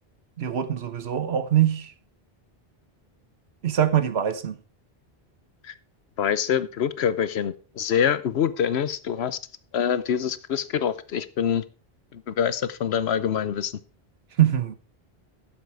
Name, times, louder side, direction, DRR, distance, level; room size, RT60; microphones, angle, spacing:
voice 1, 0.4-1.9 3.6-4.6 14.4-14.7, right 10 dB, 85° right, 1.3 m, -23 dB
voice 2, 6.2-9.4 9.7-11.6 12.1-13.7, left 8 dB, 90° left, 1.0 m, -25 dB
12.0 x 7.8 x 4.7 m
omnidirectional pair, 1.0 m